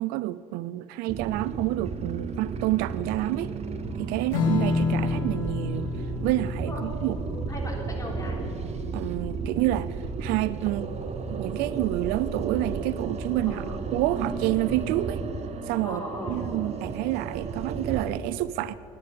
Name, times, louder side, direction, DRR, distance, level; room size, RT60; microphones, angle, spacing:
voice 1, 0.0-3.5 4.0-5.9 6.2-7.2 8.9-10.9 11.3-15.2 15.7-18.7, right 16 dB, 65° right, 17 dB, 0.4 m, -28 dB
sound 1, 1.1-18.2, right 4 dB, 40° right, 1.2 m, -33 dB
Strum, 4.3-11.2, left 5 dB, 85° left, 1.4 m, -31 dB
voice 2, 7.3-8.4 13.5-13.8 15.8-16.4, left 1 dB, 20° left, 0 dB, 3.4 m, -37 dB
10.5 x 10.0 x 7.8 m, 3.0 s
hypercardioid pair, 70°, 17 cm